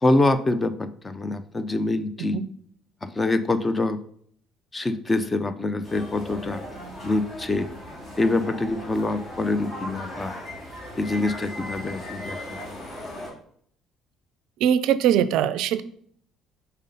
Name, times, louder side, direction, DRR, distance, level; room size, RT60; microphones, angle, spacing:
voice 1, 0.0-2.4 3.0-4.0 4.7-6.6 7.0-7.7 8.2-10.4 11.0-12.6, left 2 dB, 25° left, 12 dB, 0.6 m, -25 dB
sound 1, 5.8-13.3, left 1 dB, 40° left, 2.4 m, -38 dB
voice 2, 14.6-15.8, right 9 dB, 70° right, 15 dB, 0.4 m, -21 dB
5.3 x 4.2 x 5.3 m, 0.64 s
hypercardioid pair, 65°, 0 cm